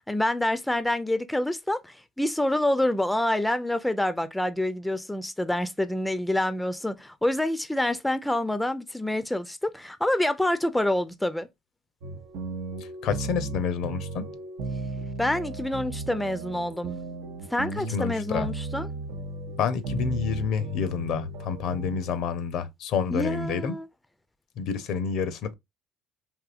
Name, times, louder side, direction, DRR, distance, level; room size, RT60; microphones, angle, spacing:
voice 1, 0.1-11.5 15.2-17.0 17.5-18.9 23.1-23.9, left 1 dB, 5° left, 0.4 m, -27 dB
sound 1, 12.0-22.1, right 2 dB, 75° right, 0.5 m, -35 dB
voice 2, 13.0-14.3 17.9-18.5 19.6-23.7 24.6-25.5, left 6 dB, 65° left, 0.6 m, -28 dB
3.6 x 2.7 x 2.4 m
hypercardioid pair, 65°, 0 cm